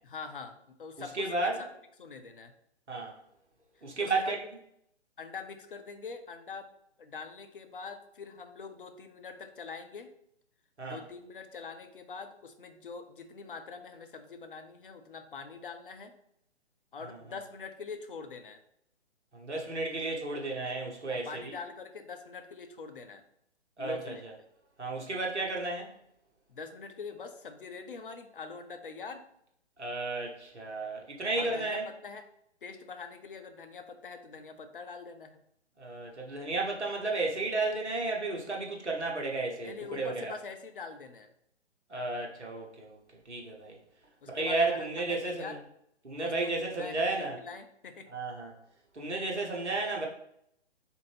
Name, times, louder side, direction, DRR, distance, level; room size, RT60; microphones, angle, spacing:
voice 1, 0.0-1.5 2.0-2.5 4.0-4.3 5.2-6.7 7.0-10.1 10.8-16.1 16.9-18.6 21.1-23.2 23.8-24.2 26.5-29.3 31.4-32.3 32.6-35.4 39.6-41.3 44.2-45.6 46.1-48.1, left 5 dB, 50° left, 7 dB, 0.4 m, -44 dB
voice 2, 1.1-1.6 2.9-3.1 3.8-4.4 10.8-11.0 17.0-17.2 19.3-21.6 23.8-24.3 24.8-25.9 29.8-31.8 35.8-40.3 41.9-43.0 43.3-43.8 44.3-45.6 46.0-47.4 48.1-48.5 48.9-50.1, right 3 dB, 80° right, -1 dB, 1.0 m, -33 dB
3.7 x 2.5 x 3.2 m, 0.73 s
figure-of-eight pair, 130°, 34 cm